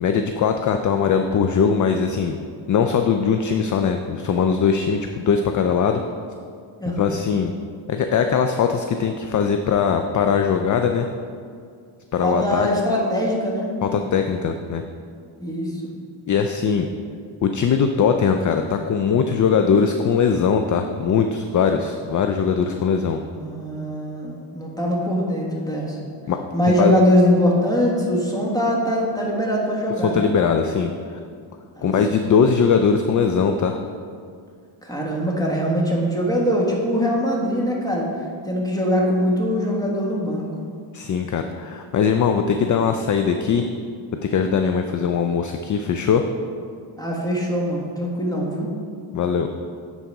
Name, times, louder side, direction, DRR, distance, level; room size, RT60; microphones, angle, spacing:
voice 1, 0.0-2.4 2.7-6.0 7.0-7.5 7.9-11.1 12.1-12.7 13.8-14.8 16.3-16.9 17.4-23.2 26.3-26.4 26.7-26.9 30.0-31.2 31.8-33.7 40.9-43.6 44.2-46.2 49.1-49.5, left 6 dB, 40° left, 6 dB, 0.4 m, -20 dB
voice 2, 6.8-7.2 12.2-13.7 15.4-15.8 23.3-26.0 26.5-30.3 31.8-32.2 34.8-38.1 38.5-40.4 47.0-48.7, equal, 5° left, -3 dB, 1.6 m, -22 dB
9.6 x 4.1 x 4.7 m, 2.2 s
cardioid pair, 100°, 50 cm